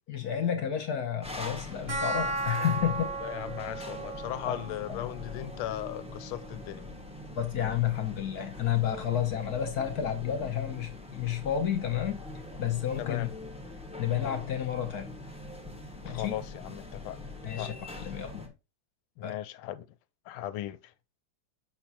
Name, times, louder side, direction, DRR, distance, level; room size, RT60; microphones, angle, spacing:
voice 1, 0.1-3.1 4.4-4.6 4.9-5.0 7.4-12.2 12.6-13.3 14.0-15.1 16.0-16.4 17.4-18.5 19.2-19.4, left 9 dB, 60° left, 1.2 m, -31 dB
sound 1, 1.2-18.5, left 2 dB, 5° right, 0.6 m, -43 dB
sound 2, 1.9-12.9, right 2 dB, 90° right, 2.8 m, -40 dB
voice 2, 3.2-6.8 13.0-13.3 16.0-17.8 19.2-19.9 20.3-20.8, left 13 dB, 85° left, 1.5 m, -37 dB
6.1 x 6.0 x 2.9 m
omnidirectional pair, 2.3 m